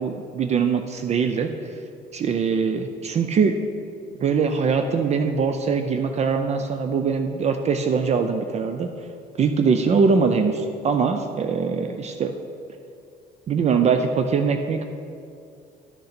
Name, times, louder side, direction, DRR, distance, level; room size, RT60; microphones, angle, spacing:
voice 1, 0.0-1.5 2.1-3.6 4.2-8.9 9.4-12.3 13.5-14.9, right 5 dB, 40° right, 7 dB, 0.5 m, -22 dB
11.5 x 6.4 x 4.3 m, 2.5 s
cardioid pair, 110°, 17 cm